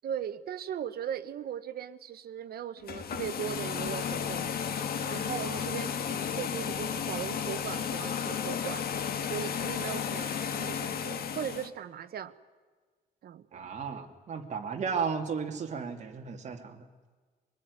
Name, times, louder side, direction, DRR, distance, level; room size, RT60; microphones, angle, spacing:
voice 1, 0.0-4.5 5.1-8.9 9.2-12.3 13.2-13.7, right 9 dB, 75° right, 11 dB, 1.2 m, -38 dB
sound 1, 2.8-11.7, left 7 dB, 70° left, 1.6 m, -33 dB
voice 2, 5.3-5.7 9.9-10.0 13.5-16.9, right 6 dB, 45° right, 3 dB, 2.5 m, -35 dB
24.5 x 20.0 x 9.7 m, 1.5 s
wide cardioid pair, 160°, 16 cm